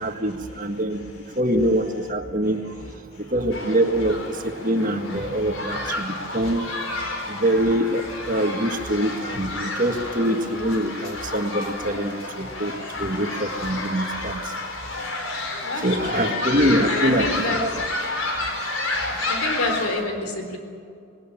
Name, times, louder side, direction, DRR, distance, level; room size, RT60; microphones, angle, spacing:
voice 1, 0.0-1.1 1.4-2.6 3.3-6.6 7.3-12.7 13.0-14.4 15.8-17.3 17.6-17.7, right 1 dB, 40° right, 6 dB, 1.7 m, -24 dB
voice 2, 0.9-1.4 3.1-3.3 15.6-16.4 16.9-17.8 18.6-18.8 19.2-20.6, left 2 dB, 90° left, 5 dB, 3.9 m, -29 dB
sound 1, 3.5-19.9, left 2 dB, 65° left, 4.3 m, -30 dB
19.5 x 19.0 x 9.0 m, 2.5 s
head